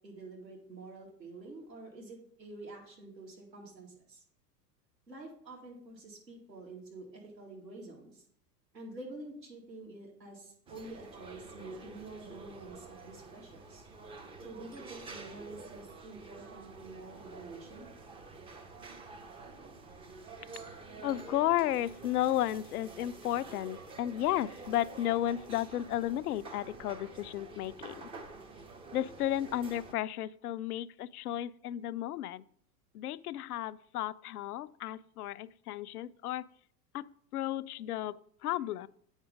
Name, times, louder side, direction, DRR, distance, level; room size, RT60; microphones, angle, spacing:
voice 1, 0.0-4.2 5.1-8.2 8.7-13.9 14.4-17.9, right 2 dB, 85° right, -1 dB, 2.5 m, -48 dB
sound 1, 10.7-29.9, right 3 dB, 10° right, 0.5 m, -49 dB
voice 2, 21.0-28.0 28.9-32.4 32.9-36.5 36.9-38.9, left 13 dB, 65° left, 16 dB, 0.5 m, -33 dB
8.1 x 5.5 x 5.0 m, 0.62 s
figure-of-eight pair, 95°, 49 cm